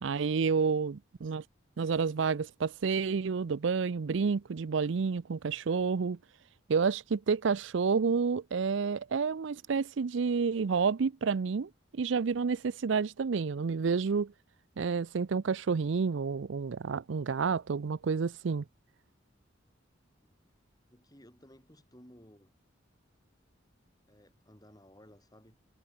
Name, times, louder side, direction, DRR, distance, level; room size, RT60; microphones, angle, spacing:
voice 1, 0.0-1.4 1.8-6.2 6.7-14.3 14.8-18.6, right 5 dB, 70° right, 0.5 m, -29 dB
voice 2, 20.9-22.6 24.1-25.6, equal, 20° left, 6.4 m, -57 dB
head